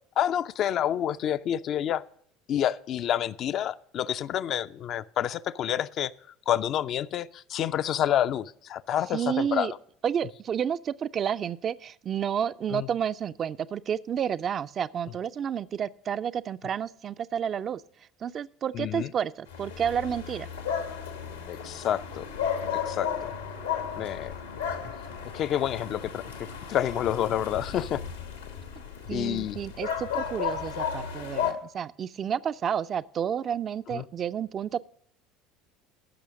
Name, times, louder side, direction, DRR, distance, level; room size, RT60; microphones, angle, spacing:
voice 1, 0.2-2.0 2.5-6.1 6.5-9.7 12.7-12.9 18.7-19.1 21.5-22.3 22.8-23.3 23.9-24.3 24.8-24.9 25.3-28.0 29.1-29.6 33.9-34.0, left 10 dB, 45° left, 14 dB, 0.4 m, -28 dB
voice 2, 9.1-9.7 10.0-17.8 18.2-20.5 29.1-34.8, right 8 dB, 35° right, 14 dB, 0.3 m, -30 dB
sound 1, 19.5-31.5, left 8 dB, 75° left, 1.1 m, -34 dB
13.5 x 6.1 x 6.2 m, 0.65 s
figure-of-eight pair, 65°, 0 cm